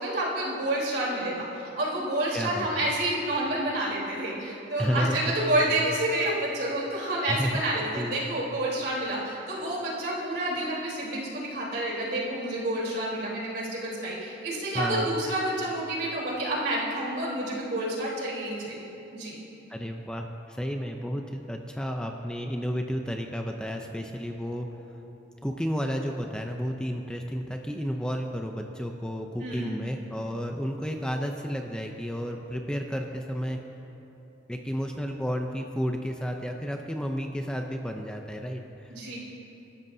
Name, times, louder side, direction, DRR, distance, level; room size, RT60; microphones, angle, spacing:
voice 1, 0.0-18.8 19.1-19.4 29.4-29.8 38.9-39.2, right 1 dB, 65° right, -5 dB, 3.9 m, -29 dB
voice 2, 2.3-2.9 4.8-5.4 7.3-7.5 7.9-8.2 14.7-15.2 19.7-24.7 25.4-33.6 34.5-39.2, equal, 5° left, 2 dB, 0.6 m, -32 dB
26.0 x 13.0 x 2.8 m, 3.0 s
head